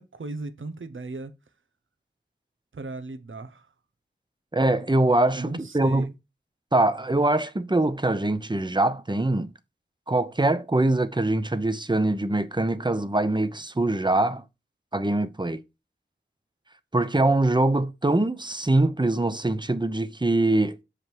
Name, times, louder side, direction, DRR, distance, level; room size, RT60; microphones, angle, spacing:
voice 1, 0.0-1.3 2.7-3.7 5.4-6.1, right 3 dB, 85° right, 1.1 m, -36 dB
voice 2, 4.5-6.1 6.7-9.5 10.1-14.4 14.9-15.6 16.9-20.8, right 2 dB, 25° right, 0.9 m, -23 dB
7.4 x 5.1 x 4.6 m
wide cardioid pair, 60°, 20 cm